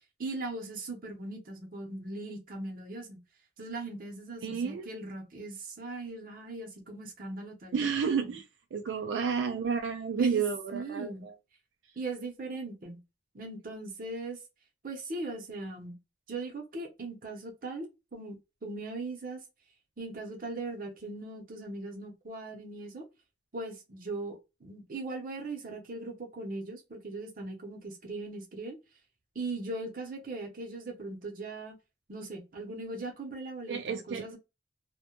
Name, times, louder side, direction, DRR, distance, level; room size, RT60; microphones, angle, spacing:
voice 1, 0.2-3.2 3.6-7.9 8.2-8.3 10.2-10.3 10.7-11.2 12.0-13.0 13.3-14.4 14.8-16.0 16.3-18.4 18.6-19.4 20.0-23.1 23.5-28.8 29.3-31.7 32.1-34.4, right 2 dB, 50° right, 0.7 m, -39 dB
voice 2, 4.4-4.9 7.7-8.4 8.7-11.3 33.7-34.4, right 6 dB, 80° right, 0.3 m, -31 dB
2.1 x 2.1 x 2.9 m
head